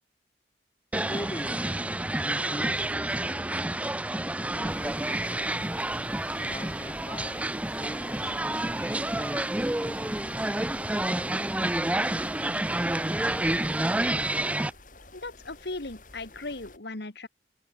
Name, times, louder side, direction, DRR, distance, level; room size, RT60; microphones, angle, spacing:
voice 1, 0.9-1.8 2.2-3.6 4.5-5.3 6.3-10.9, equal, 20° left, 6.4 m, -42 dB
sound 1, 0.9-14.7, right 1 dB, 5° right, 0.5 m, -29 dB
sound 2, 4.7-16.8, left 2 dB, 45° left, 7.3 m, -51 dB
voice 2, 15.1-17.3, left 2 dB, 65° left, 1.8 m, -37 dB
open air
head